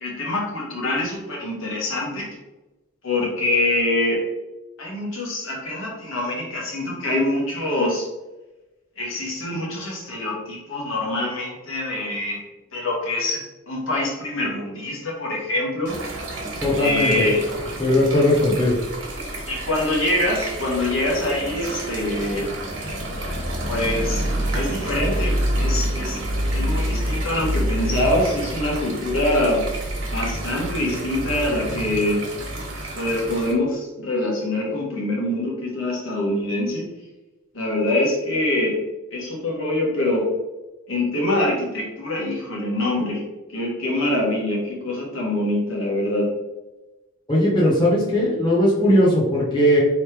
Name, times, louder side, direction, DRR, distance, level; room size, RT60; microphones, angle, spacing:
voice 1, 0.0-2.3 3.0-4.2 4.8-8.1 9.0-12.4 12.7-15.9 16.8-17.4 19.5-22.5 23.7-24.3 24.5-26.2 26.5-29.6 30.1-32.2 32.9-36.8 37.5-38.8 39.1-40.3 40.9-43.2 43.5-46.3, left 1 dB, 80° left, -3 dB, 1.3 m, -24 dB
sound 1, 15.9-33.5, right 1 dB, 65° right, 1.1 m, -28 dB
voice 2, 16.6-17.2 17.8-18.8 47.3-49.8, left 1 dB, 20° left, -6 dB, 1.0 m, -18 dB
4.4 x 3.2 x 3.3 m, 1.1 s
head